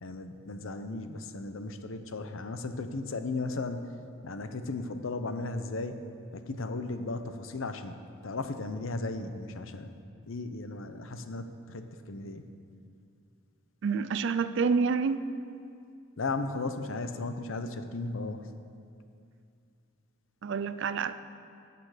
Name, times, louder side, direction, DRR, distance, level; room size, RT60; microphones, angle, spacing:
voice 1, 0.0-3.9 4.2-6.0 6.3-8.0 8.2-9.9 10.3-12.4 16.2-18.4, left 3 dB, 70° left, 9 dB, 0.7 m, -35 dB
voice 2, 13.8-15.3 20.4-21.1, right 5 dB, 60° right, 13 dB, 0.4 m, -28 dB
17.5 x 6.9 x 5.0 m, 2.4 s
head